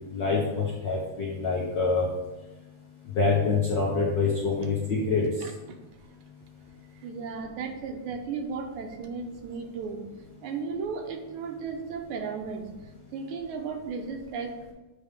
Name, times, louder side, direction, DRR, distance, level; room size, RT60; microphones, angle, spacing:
voice 1, 0.1-2.1 3.1-5.5, left 4 dB, 70° left, -3 dB, 1.0 m, -26 dB
voice 2, 7.0-10.0 10.4-12.7 13.1-14.5, right 5 dB, 80° right, 4 dB, 2.1 m, -35 dB
8.2 x 3.5 x 5.0 m, 1.1 s
omnidirectional pair, 3.5 m